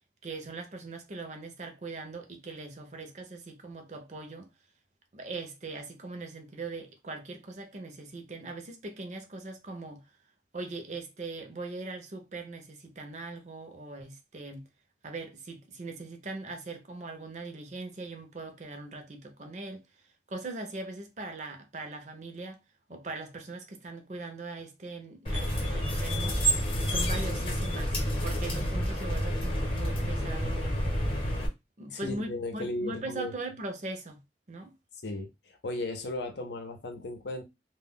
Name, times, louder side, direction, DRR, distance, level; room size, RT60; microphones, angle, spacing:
voice 1, 0.2-4.5 5.1-10.1 10.5-14.6 15.0-19.8 20.3-22.6 22.9-26.5 26.8-30.8 31.8-34.2 34.5-34.7, right 3 dB, 40° right, 0.5 m, -40 dB
sound 1, 25.3-31.5, equal, 30° left, 0.8 m, -29 dB
voice 2, 31.9-33.3 35.0-37.4, left 2 dB, 75° left, 0.7 m, -36 dB
2.2 x 2.1 x 3.6 m
head